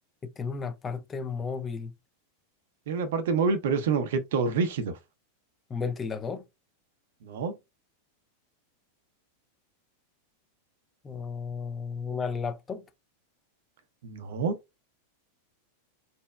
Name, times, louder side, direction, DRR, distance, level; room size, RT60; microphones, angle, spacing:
voice 1, 0.4-1.9 5.7-6.4 11.0-12.8, left 5 dB, 20° left, 0.6 m, -33 dB
voice 2, 2.9-5.0 7.2-7.6 14.0-14.6, right 5 dB, 55° right, 0.7 m, -27 dB
4.2 x 3.0 x 2.2 m
figure-of-eight pair, 90°, 0 cm